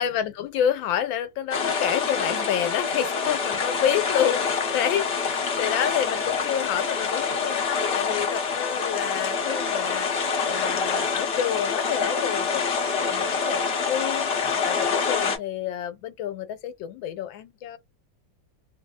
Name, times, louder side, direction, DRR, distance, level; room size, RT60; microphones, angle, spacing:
voice 1, 0.0-17.8, left 10 dB, 85° left, 1.4 m, -29 dB
sound 1, 1.5-15.4, left 5 dB, 50° left, 0.7 m, -26 dB
3.1 x 2.7 x 2.3 m
omnidirectional pair, 2.1 m